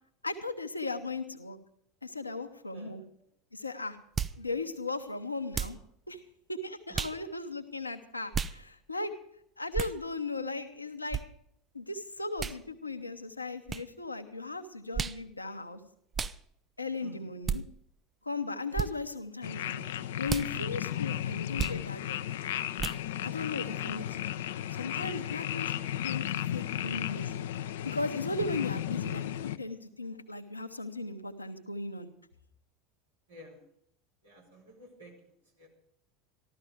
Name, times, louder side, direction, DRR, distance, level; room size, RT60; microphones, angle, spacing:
voice 1, 0.2-1.6 2.0-3.0 3.5-4.0 4.4-5.8 6.1-6.2 6.5-9.1 9.6-11.2 11.7-15.8 16.8-17.6 18.2-19.8 20.2-22.2 23.2-24.3 24.7-25.7 26.0-27.5 27.8-32.1, left 3 dB, 90° left, 7 dB, 0.9 m, -37 dB
sound 1, 4.2-4.4 5.5-5.8 6.9-7.2 8.3-8.6 9.7-10.0 11.1-11.2 12.4-12.6 13.7-13.8 14.9-15.2 16.1-16.4 17.4-17.6 18.7-18.9 20.3-20.5 21.6-21.8 22.8-23.0, right 6 dB, 25° right, 0.5 m, -32 dB
voice 2, 6.9-7.2 17.0-17.3 33.3-33.6 34.2-35.7, right 1 dB, 80° right, -1 dB, 4.2 m, -53 dB
sound 2, 19.4-29.6, left 11 dB, 65° left, 0.5 m, -34 dB
14.0 x 13.0 x 5.0 m, 0.72 s
figure-of-eight pair, 75°, 0 cm